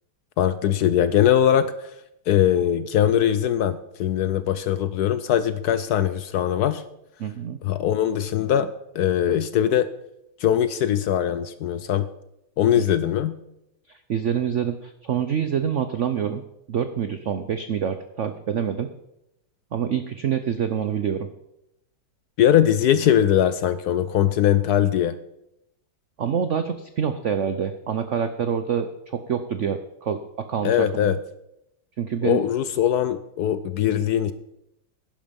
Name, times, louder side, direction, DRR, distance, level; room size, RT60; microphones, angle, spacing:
voice 1, 0.4-1.9 2.3-6.8 7.6-8.7 8.9-9.9 10.4-12.1 12.6-13.3 22.4-25.1 30.6-31.2 32.2-34.3, left 10 dB, 75° left, 14 dB, 0.9 m, -21 dB
voice 2, 7.2-7.6 14.1-16.4 16.7-18.9 19.7-21.3 26.2-30.2 30.5-31.1 32.0-32.4, right 8 dB, 85° right, 9 dB, 0.6 m, -26 dB
11.5 x 10.5 x 5.3 m, 0.84 s
omnidirectional pair, 2.2 m